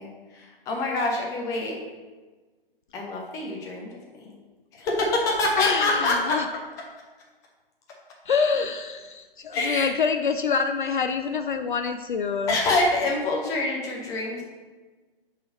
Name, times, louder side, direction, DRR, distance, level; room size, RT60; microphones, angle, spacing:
voice 1, 0.0-1.8 2.9-3.9 4.7-6.4 9.5-9.9 12.5-14.4, left 2 dB, 10° left, -1 dB, 0.7 m, -26 dB
voice 2, 5.6-6.5 8.3-12.6, left 5 dB, 55° left, 8 dB, 0.4 m, -26 dB
5.4 x 4.1 x 5.2 m, 1.3 s
figure-of-eight pair, 130°, 29 cm